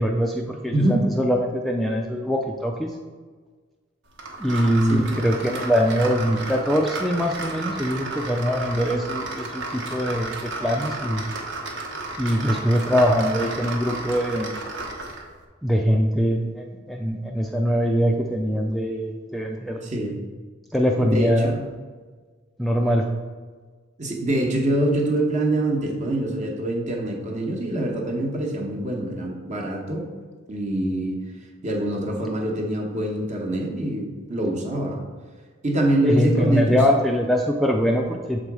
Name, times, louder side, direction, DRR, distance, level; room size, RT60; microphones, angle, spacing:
voice 1, 0.0-3.0 4.4-11.2 12.2-14.5 15.6-19.8 20.7-21.6 22.6-23.1 36.0-38.4, equal, ahead, 1 dB, 0.3 m, -23 dB
sound 1, 4.2-15.3, right 2 dB, 65° right, 1.1 m, -33 dB
voice 2, 19.8-20.1 21.0-21.6 24.0-30.1 30.5-31.2 31.6-35.0 35.6-36.8, right 1 dB, 40° right, 1 dB, 1.0 m, -24 dB
6.9 x 3.9 x 4.7 m, 1.5 s
head